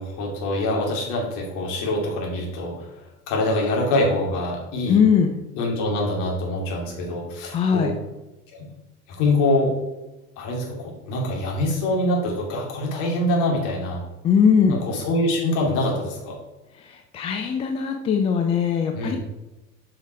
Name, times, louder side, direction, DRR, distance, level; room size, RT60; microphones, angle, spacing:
voice 1, 0.0-5.0 5.6-8.0 8.5-8.7 9.1-9.8 10.4-14.1 14.7-16.4 18.9-19.2, left 1 dB, 40° left, -2 dB, 3.1 m, -25 dB
voice 2, 4.9-5.3 7.5-7.9 14.2-14.8 16.9-19.2, left 6 dB, 15° left, 4 dB, 0.4 m, -20 dB
8.4 x 5.6 x 4.6 m, 1.0 s
figure-of-eight pair, 85°, 46 cm